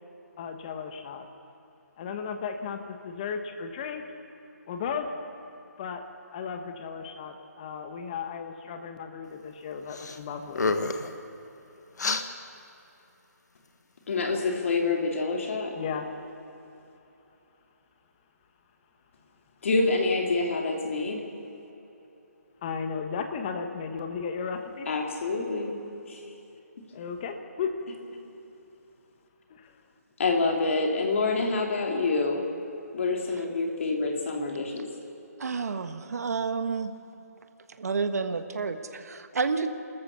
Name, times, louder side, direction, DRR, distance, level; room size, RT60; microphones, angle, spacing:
voice 1, 0.4-1.3 2.0-4.1 4.7-5.1 5.8-6.0 6.3-10.7 15.7-16.2 22.6-24.9 26.9-27.8 29.5-29.7, left 6 dB, 25° left, 6 dB, 1.3 m, -35 dB
sound 1, 9.9-10.2 10.5-11.1 12.0-12.2, left 3 dB, 80° left, 1.5 m, -28 dB
voice 2, 14.1-15.8 19.6-21.3 24.9-25.8 26.1-26.2 26.8-26.9 30.2-32.4 32.9-34.9, left 3 dB, 50° left, 2 dB, 2.9 m, -27 dB
voice 3, 35.4-36.9 37.8-39.7, right 5 dB, 65° right, 8 dB, 1.5 m, -30 dB
29.0 x 14.0 x 7.0 m, 3.0 s
hypercardioid pair, 165°, 9 cm